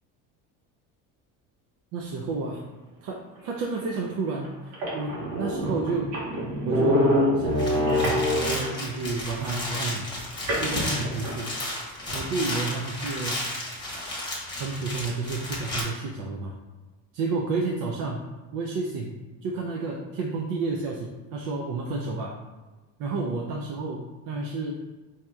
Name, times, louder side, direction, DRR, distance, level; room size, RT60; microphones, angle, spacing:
voice 1, 1.9-2.6 3.0-6.2 6.6-10.1 10.6-11.5 12.1-13.5 14.6-16.5 17.1-18.2 18.5-19.1 19.4-22.4 23.0-24.7, right 3 dB, 60° right, 0 dB, 0.5 m, -31 dB
sound 1, 3.8-3.9 4.4-4.5 4.7-8.8 10.5-11.6, equal, 85° right, 1.2 m, -25 dB
sound 2, 7.5-15.8, left 1 dB, 15° left, 1.0 m, -33 dB
4.8 x 2.7 x 2.2 m, 1.2 s
cardioid pair, 135°, 36 cm